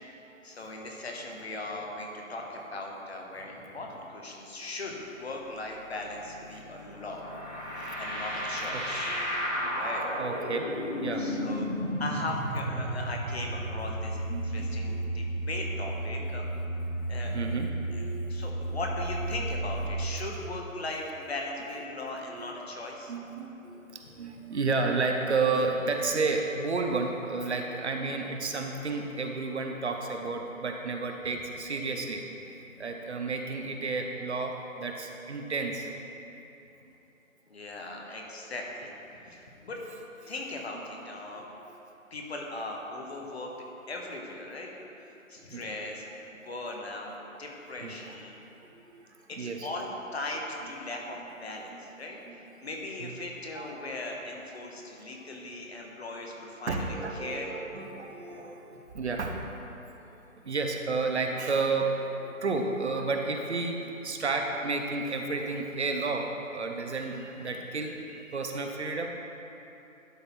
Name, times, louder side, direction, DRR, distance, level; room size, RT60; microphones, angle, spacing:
voice 1, 0.4-7.2 8.0-9.1 9.7-10.0 11.2-11.7 12.0-16.5 17.1-17.3 17.9-18.0 18.3-23.1 37.5-39.0 39.3-39.8 40.3-41.4 42.1-43.5 43.9-44.7 45.3-48.4 49.3-57.5, left 2 dB, 50° left, 0 dB, 1.3 m, -38 dB
sound 1, 6.1-20.0, right 1 dB, 35° left, 1.4 m, -33 dB
voice 2, 7.5-8.0 8.7-11.3 13.8-13.9 14.3-15.0 17.2-18.5 22.3-22.5 23.1-35.9 36.9-37.0 40.2-40.3 40.7-40.8 41.7-41.8 45.1-45.2 45.5-45.7 47.8-48.0 48.4-49.7 50.6-50.7 51.2-51.3 51.7-51.9 52.3-52.4 53.0-53.1 53.5-53.7 56.7-59.5 59.9-60.1 60.4-69.1, right 3 dB, 55° right, 3 dB, 0.8 m, -32 dB
11.5 x 4.1 x 4.5 m, 3.0 s
figure-of-eight pair, 150°, 41 cm